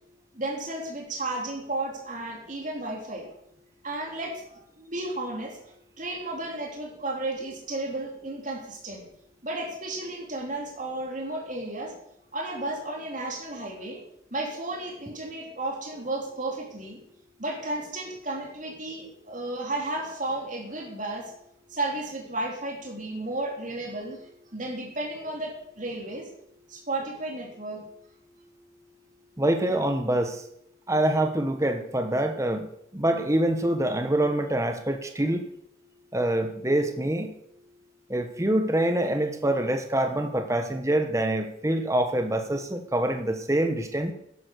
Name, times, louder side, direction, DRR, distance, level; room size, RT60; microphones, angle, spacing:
voice 1, 0.3-3.3 3.8-5.6 6.0-9.1 9.4-11.9 12.3-14.0 14.3-17.0 17.4-21.3 21.7-24.2 24.5-26.3 26.7-27.8, right 2 dB, 40° right, 0 dB, 3.6 m, -33 dB
voice 2, 29.4-30.5 30.9-32.7 32.9-35.4 36.1-37.3 38.1-44.1, right 1 dB, 15° right, 6 dB, 1.1 m, -25 dB
12.5 x 9.9 x 6.7 m, 0.74 s
head